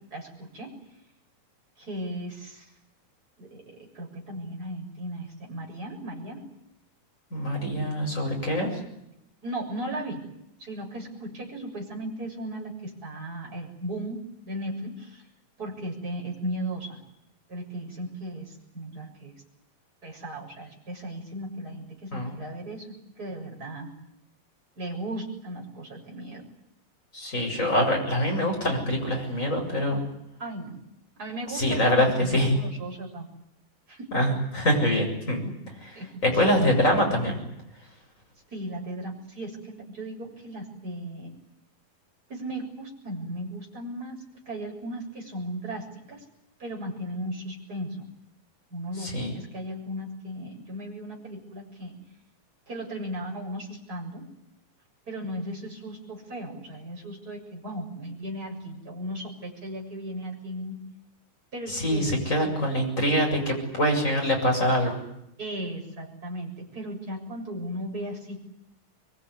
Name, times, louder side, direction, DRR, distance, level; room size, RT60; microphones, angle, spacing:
voice 1, 0.1-0.8 1.8-2.7 3.4-6.4 9.4-10.2 10.6-15.2 15.6-17.0 17.5-19.4 20.0-23.9 24.8-26.5 30.4-30.8 31.2-33.3 33.9-34.1 35.4-35.6 36.0-36.4 38.5-41.3 42.3-46.2 46.6-48.1 48.7-52.0 52.7-54.2 55.1-60.8 61.5-62.1 62.4-62.6 65.4-68.4, right 1 dB, 25° right, -2 dB, 7.6 m, -36 dB
voice 2, 7.3-8.8 22.1-22.3 27.1-30.0 31.5-32.6 34.1-35.4 36.2-37.4 49.0-49.3 61.7-65.0, equal, 20° left, 1 dB, 7.9 m, -24 dB
25.0 x 23.5 x 9.9 m, 0.83 s
omnidirectional pair, 4.2 m